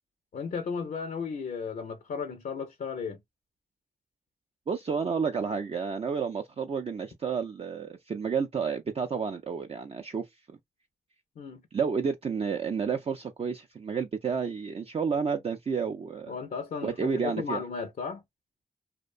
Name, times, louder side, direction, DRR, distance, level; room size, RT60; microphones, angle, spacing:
voice 1, 0.3-3.2 11.4-11.6 16.3-18.2, left 5 dB, 65° left, 0.5 m, -35 dB
voice 2, 4.7-10.3 11.7-16.3 16.8-17.6, right 6 dB, 40° right, 0.4 m, -30 dB
2.5 x 2.1 x 2.3 m
cardioid pair, 45°, 15 cm